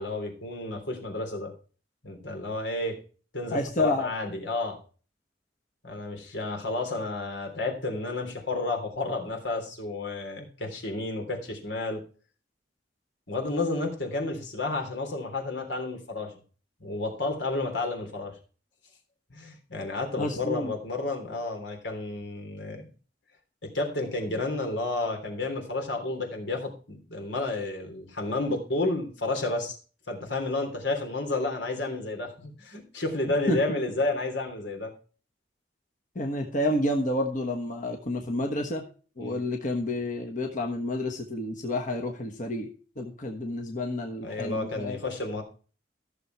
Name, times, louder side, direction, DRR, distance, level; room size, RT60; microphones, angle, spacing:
voice 1, 0.0-1.5 2.0-3.0 3.3-4.8 5.8-12.0 13.3-16.3 16.8-18.3 19.3-22.9 23.6-29.8 30.1-34.9 39.2-39.4 44.2-45.4, left 2 dB, 85° left, 3 dB, 3.4 m, -31 dB
voice 2, 3.5-4.1 20.2-20.7 33.5-33.8 36.1-38.9 39.2-45.0, left 1 dB, 45° left, 2 dB, 1.4 m, -29 dB
14.5 x 6.9 x 4.7 m, 0.38 s
head